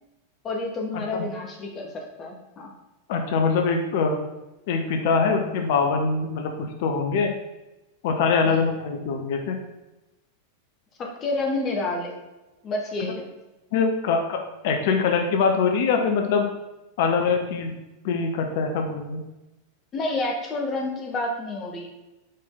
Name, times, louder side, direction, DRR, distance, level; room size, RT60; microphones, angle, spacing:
voice 1, 0.4-2.7 8.4-8.7 11.0-12.1 12.6-13.3 19.9-21.9, left 2 dB, 30° left, 1 dB, 1.4 m, -29 dB
voice 2, 3.1-4.2 4.7-7.4 8.0-9.6 13.7-16.5 17.0-17.8 18.0-19.2, left 5 dB, 50° left, 4 dB, 0.7 m, -23 dB
5.5 x 5.0 x 3.9 m, 1.0 s
figure-of-eight pair, 90°, 0 cm